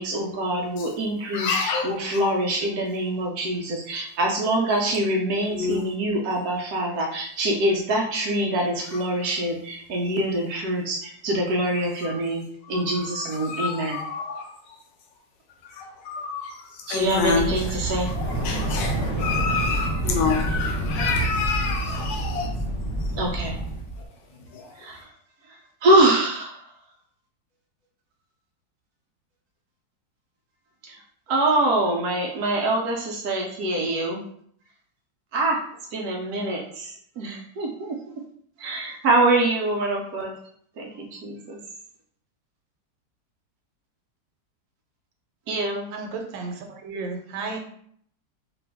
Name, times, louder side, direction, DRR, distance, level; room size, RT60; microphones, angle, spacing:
voice 1, 0.0-12.4 12.7-14.0 16.9-18.1 23.2-23.6 24.7-25.1 25.5-26.7 30.8-31.0 31.3-34.2 35.3-35.6 35.9-38.0 38.6-40.3 40.8-41.6 45.5-45.9, right 1 dB, 70° right, 0 dB, 1.0 m, -25 dB
voice 2, 1.3-2.3 5.5-5.8 8.9-9.3 12.0-12.2 12.7-14.8 15.6-22.6 23.0-23.1 23.4-23.5 24.0-25.0, left 4 dB, 80° left, 3 dB, 1.3 m, -29 dB
sound 1, 17.0-24.0, right 1 dB, 5° left, 1.0 m, -28 dB
voice 3, 45.9-47.6, right 3 dB, 85° right, 3 dB, 1.4 m, -33 dB
2.9 x 2.5 x 3.3 m, 0.63 s
omnidirectional pair, 1.9 m